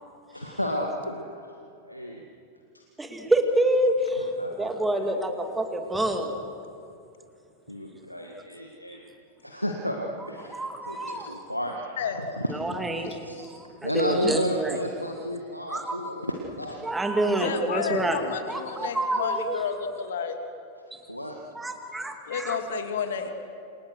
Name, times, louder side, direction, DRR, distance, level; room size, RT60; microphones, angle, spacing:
voice 1, 0.3-1.6 1.8-2.2 2.7-2.8 4.2-4.7 7.7-9.0 9.4-10.6 10.8-12.8 13.2-13.4 13.8-16.8 17.9-18.0 21.1-21.4, equal, 90° left, 1 dB, 1.9 m, -32 dB
voice 2, 3.0-6.3 10.5-11.3 12.5-14.8 15.7-15.9 16.8-19.6 21.5-22.6, right 1 dB, 10° right, 4 dB, 2.4 m, -27 dB
voice 3, 12.0-12.3 17.3-20.4 22.3-23.3, left 6 dB, 60° left, 5 dB, 2.9 m, -31 dB
29.5 x 27.5 x 6.5 m, 2.5 s
figure-of-eight pair, 90°, 0 cm